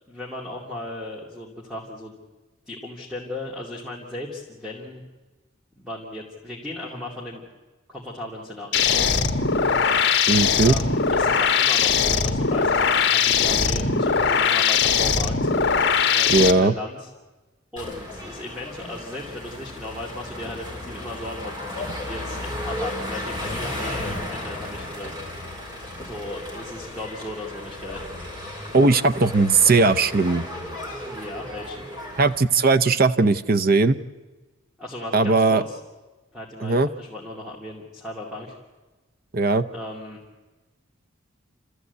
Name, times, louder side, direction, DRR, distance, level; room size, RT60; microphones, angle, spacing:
voice 1, 0.1-2.2 2.7-5.0 5.8-7.4 7.9-9.2 10.6-15.5 16.1-17.1 17.7-25.2 26.0-28.1 31.0-31.9 34.8-35.8 36.3-38.6 39.7-40.2, left 1 dB, ahead, -3 dB, 2.5 m, -36 dB
sound 1, 8.7-16.5, left 6 dB, 55° left, 1.4 m, -20 dB
voice 2, 10.3-10.8 16.3-16.7 28.7-30.4 32.2-34.0 35.1-35.6 36.6-36.9 39.3-39.7, right 3 dB, 45° right, 12 dB, 0.7 m, -18 dB
sound 2, 17.8-32.4, left 1 dB, 20° right, 4.7 m, -34 dB
29.0 x 14.0 x 8.2 m, 1.2 s
head